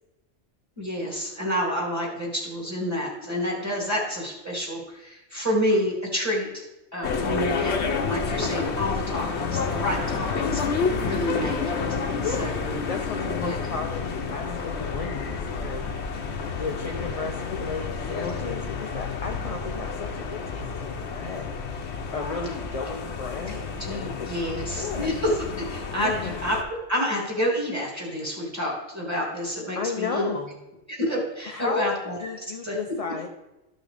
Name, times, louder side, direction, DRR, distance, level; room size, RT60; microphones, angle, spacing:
voice 1, 0.8-6.6 6.9-7.8 8.1-10.6 11.0-11.8 12.4-12.5 13.4-13.6 23.5-30.3 30.9-32.2 32.6-32.8, equal, 15° right, -3 dB, 2.6 m, -28 dB
sound 1, 7.0-26.6, left 5 dB, 70° left, 1.1 m, -30 dB
voice 2, 12.2-15.9 16.6-21.5 22.1-25.1 26.0-26.3 29.8-30.5 31.5-33.3, left 4 dB, 40° left, 4 dB, 0.6 m, -34 dB
13.5 x 6.1 x 3.4 m, 0.98 s
omnidirectional pair, 1.2 m